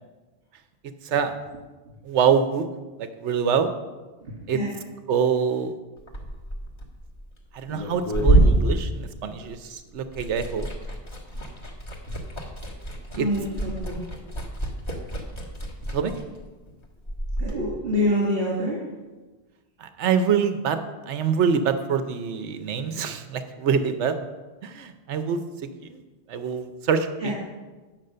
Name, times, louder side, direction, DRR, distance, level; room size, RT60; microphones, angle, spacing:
voice 1, 2.0-2.7 3.0-3.7 4.5-4.6 5.1-5.8 7.5-10.7 13.2-13.3 15.9-16.1 19.8-20.8 21.1-24.1 24.6-25.7 26.3-27.3, right 6 dB, 90° right, 9 dB, 1.0 m, -25 dB
voice 2, 4.2-4.7 8.2-8.5 13.1-14.0 17.4-18.8 27.2-27.3, left 1 dB, 55° right, -7 dB, 2.5 m, -26 dB
Liquid, 6.0-9.7 10.0-17.5, right 1 dB, 25° left, 1.4 m, -27 dB
9.0 x 6.1 x 6.6 m, 1.2 s
omnidirectional pair, 1.2 m